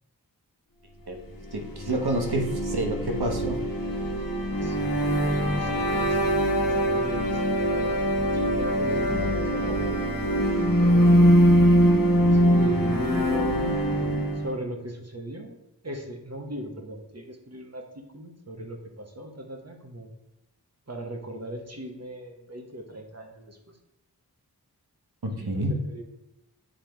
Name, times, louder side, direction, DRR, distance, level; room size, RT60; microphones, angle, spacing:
voice 1, 1.5-3.6 25.2-25.8, right 1 dB, 75° right, 3 dB, 1.2 m, -28 dB
sound 1, 1.6-14.6, equal, 60° left, 1.3 m, -23 dB
voice 2, 4.6-10.2 10.8-11.4 12.3-13.6 14.3-15.6 15.8-20.1 20.9-23.8 25.2-26.0, right 1 dB, 40° right, 3 dB, 1.2 m, -38 dB
7.6 x 3.4 x 4.5 m, 0.94 s
wide cardioid pair, 65°, 39 cm